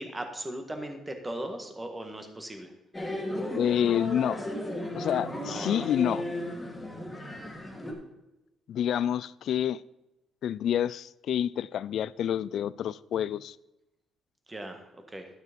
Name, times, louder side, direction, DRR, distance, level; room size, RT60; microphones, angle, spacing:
voice 1, 0.0-2.7 5.4-5.9 14.5-15.3, right 1 dB, 15° right, 1.7 m, -38 dB
sound 1, 2.9-7.9, left 1 dB, 10° left, 2.7 m, -35 dB
voice 2, 3.5-4.4 4.9-6.2 8.7-9.8 10.4-13.5, left 10 dB, 70° left, 0.3 m, -28 dB
12.0 x 6.2 x 5.3 m
cardioid pair, 90°, 0 cm